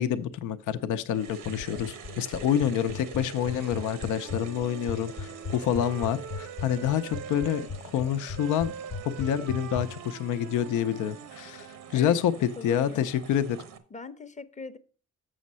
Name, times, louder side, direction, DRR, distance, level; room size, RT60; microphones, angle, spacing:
voice 1, 0.0-8.7 9.0-11.7 11.9-12.3 12.6-13.6, left 9 dB, 85° left, 0.7 m, -27 dB
sound 1, 1.1-13.8, right 6 dB, 85° right, 1.1 m, -46 dB
sound 2, 1.4-9.9, left 5 dB, 55° left, 0.9 m, -36 dB
Wind instrument woodwind instrument, 3.2-7.7 8.4-12.0, right 8 dB, 65° right, 0.6 m, -44 dB
voice 2, 12.6-13.1 13.9-14.8, left 4 dB, 25° left, 0.7 m, -39 dB
7.1 x 6.3 x 5.4 m
cardioid pair, 90°, 30 cm